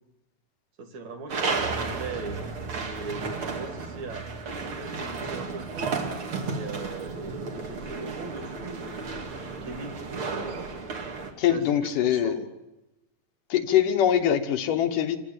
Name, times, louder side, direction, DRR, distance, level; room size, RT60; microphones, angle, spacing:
voice 1, 0.8-2.4 2.9-4.2 4.6-5.9 6.4-10.7 11.4-12.5, right 3 dB, 55° right, 5 dB, 3.2 m, -40 dB
sound 1, 1.3-11.3, right 4 dB, 40° right, 2.8 m, -33 dB
sound 2, 1.6-11.2 11.4-11.5 11.8-11.9, right 4 dB, 85° right, 4.7 m, -45 dB
voice 2, 11.4-12.4 13.5-15.2, left 10 dB, 70° left, 7 dB, 2.8 m, -23 dB
28.0 x 16.0 x 8.9 m, 1.0 s
omnidirectional pair, 4.0 m